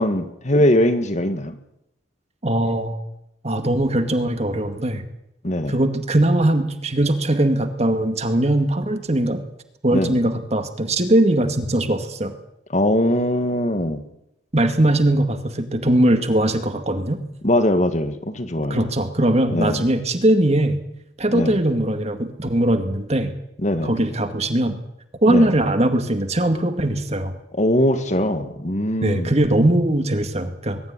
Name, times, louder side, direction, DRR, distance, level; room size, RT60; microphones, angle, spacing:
voice 1, 0.0-1.6 5.4-5.8 9.9-10.2 12.7-14.0 17.4-18.8 19.5-19.9 21.3-21.6 23.6-23.9 25.3-25.5 27.6-29.3, left 1 dB, 40° left, 8 dB, 2.0 m, -21 dB
voice 2, 2.4-3.0 3.4-5.0 5.7-9.4 9.8-12.3 14.5-17.2 18.6-20.8 21.2-23.3 23.8-24.8 25.2-27.3 29.0-30.8, right 1 dB, 35° right, 7 dB, 2.2 m, -20 dB
22.5 x 13.0 x 9.9 m, 0.80 s
head